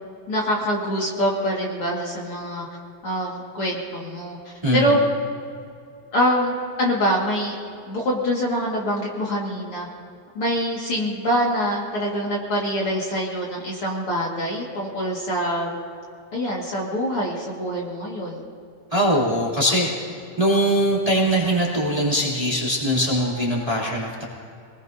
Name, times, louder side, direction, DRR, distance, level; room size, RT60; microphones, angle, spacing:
voice 1, 0.3-2.7 3.0-4.4 4.7-5.0 6.1-7.6 7.9-9.9 10.4-15.7 16.3-18.4, equal, 50° left, -3 dB, 2.6 m, -24 dB
voice 2, 4.6-5.0 18.9-19.9 20.4-24.3, equal, 10° right, -5 dB, 2.6 m, -21 dB
26.0 x 19.5 x 2.7 m, 2.5 s
omnidirectional pair, 3.5 m